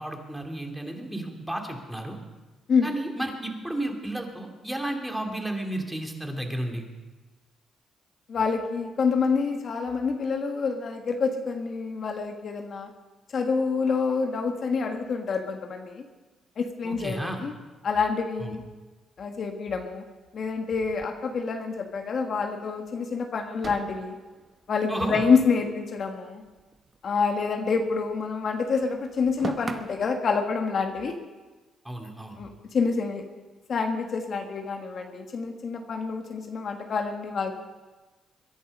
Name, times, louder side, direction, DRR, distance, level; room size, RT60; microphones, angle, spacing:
voice 1, 0.0-2.2 2.8-6.8 16.8-17.5 18.4-18.5 24.9-25.2 31.8-32.4, right 1 dB, 5° right, 2 dB, 2.7 m, -32 dB
voice 2, 8.3-12.9 13.3-16.0 16.6-17.5 17.8-18.6 19.2-20.0 20.3-24.1 24.7-26.4 27.0-31.1 32.4-32.5 32.7-33.2 33.7-37.5, left 5 dB, 55° left, 4 dB, 1.6 m, -27 dB
sound 1, 20.7-22.0 22.4-22.5 22.8-22.9 23.6-26.1 26.3-28.2 28.4-30.2, right 4 dB, 30° right, 1.0 m, -41 dB
22.5 x 11.0 x 5.4 m, 1.2 s
cardioid pair, 90°, 0 cm